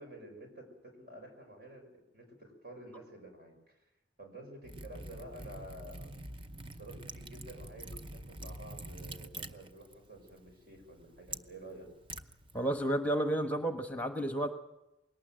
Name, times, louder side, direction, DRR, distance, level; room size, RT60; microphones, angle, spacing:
voice 1, 0.0-3.8 4.2-6.2 6.7-11.9, right 1 dB, 55° right, 3 dB, 6.2 m, -50 dB
Liquid, 4.6-12.9, right 2 dB, 30° right, 0.8 m, -46 dB
voice 2, 12.5-14.5, right 1 dB, 10° left, 6 dB, 1.2 m, -31 dB
21.5 x 18.5 x 7.7 m, 0.92 s
head